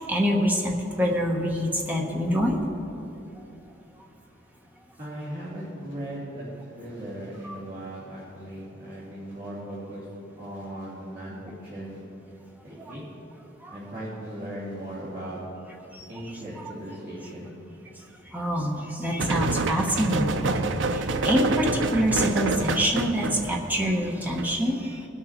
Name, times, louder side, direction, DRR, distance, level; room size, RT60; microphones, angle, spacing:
voice 1, 0.1-2.6 7.4-7.5 12.8-12.9 13.6-13.8 15.9-16.0 18.3-25.1, equal, 10° right, 0 dB, 1.1 m, -26 dB
voice 2, 5.0-6.5 6.8-10.0 10.4-12.0 12.6-13.0 13.7-15.4 16.1-17.5, right 1 dB, 45° right, -12 dB, 3.0 m, -38 dB
sound 1, 19.2-24.6, right 3 dB, 65° right, 0.5 m, -27 dB
19.5 x 6.6 x 4.4 m, 2.9 s
head